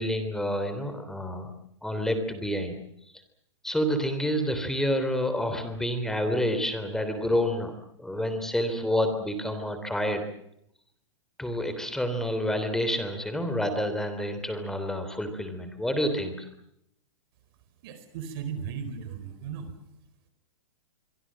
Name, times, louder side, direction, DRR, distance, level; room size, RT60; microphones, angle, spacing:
voice 1, 0.0-1.5 1.8-2.8 3.6-7.7 8.0-10.3 11.4-16.5, equal, 5° left, 8 dB, 3.4 m, -28 dB
voice 2, 17.8-19.7, right 7 dB, 50° right, 10 dB, 4.5 m, -36 dB
25.5 x 24.0 x 7.6 m, 0.78 s
hypercardioid pair, 145°, 16 cm